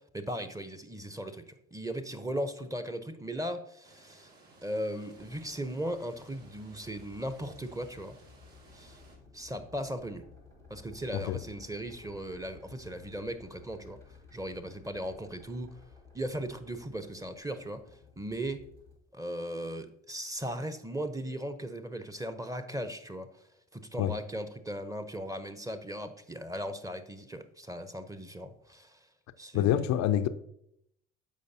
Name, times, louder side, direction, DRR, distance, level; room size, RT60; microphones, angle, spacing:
voice 1, 0.0-4.3 4.6-8.2 8.7-9.0 9.3-10.3 10.7-14.0 14.3-15.8 16.1-17.8 18.2-18.7 19.1-23.5 23.7-29.1 29.4-29.9, equal, 10° right, 0.8 m, -37 dB
sound 1, 3.8-9.2, right 2 dB, 60° right, 2.7 m, -58 dB
sound 2, 5.1-18.9, left 4 dB, 90° right, 2.2 m, -56 dB
voice 2, 29.5-30.3, left 11 dB, 50° left, 0.6 m, -26 dB
14.5 x 5.3 x 2.8 m
figure-of-eight pair, 50°, 36 cm